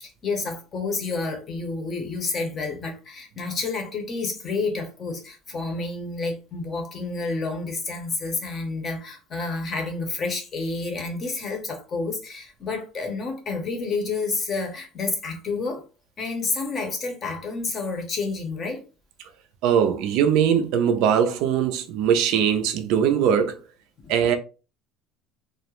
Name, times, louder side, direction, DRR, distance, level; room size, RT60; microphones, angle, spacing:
voice 1, 0.0-15.8 16.2-18.8 24.0-24.1, left 3 dB, 30° left, 0.6 m, -29 dB
voice 2, 19.6-23.6 24.1-24.3, right 8 dB, 60° right, 0.4 m, -21 dB
2.3 x 2.0 x 2.9 m
cardioid pair, 165°, 0 cm